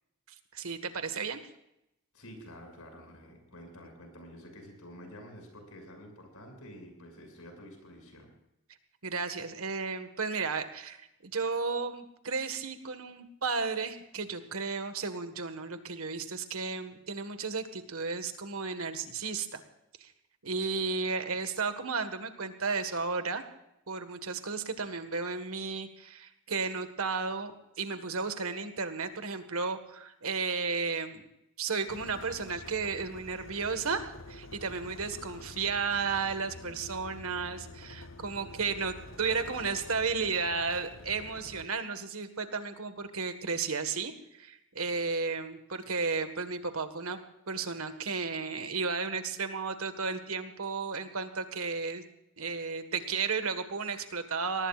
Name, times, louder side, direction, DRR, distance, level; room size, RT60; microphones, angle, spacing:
voice 1, 0.5-1.4 9.0-19.6 20.0-20.1 20.4-23.5 23.9-31.2 31.6-47.2 47.5-52.0 52.4-54.7, right 4 dB, 75° right, 8 dB, 1.7 m, -33 dB
voice 2, 2.1-8.3, equal, 85° left, 3 dB, 6.7 m, -49 dB
sound 1, 31.9-41.7, left 2 dB, 60° left, 1.1 m, -48 dB
22.5 x 19.0 x 2.5 m, 0.85 s
head